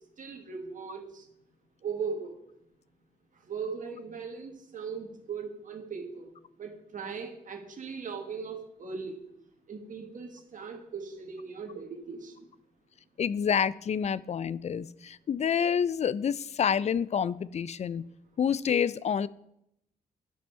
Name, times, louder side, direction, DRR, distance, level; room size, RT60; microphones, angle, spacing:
voice 1, 0.2-1.2 1.8-2.4 3.5-6.3 6.6-9.2 9.7-12.5, right 5 dB, 50° right, 3 dB, 1.5 m, -38 dB
voice 2, 13.2-18.0 18.4-19.3, left 7 dB, 40° left, 19 dB, 0.4 m, -28 dB
10.5 x 5.3 x 4.3 m, 0.78 s
cardioid pair, 70°, 17 cm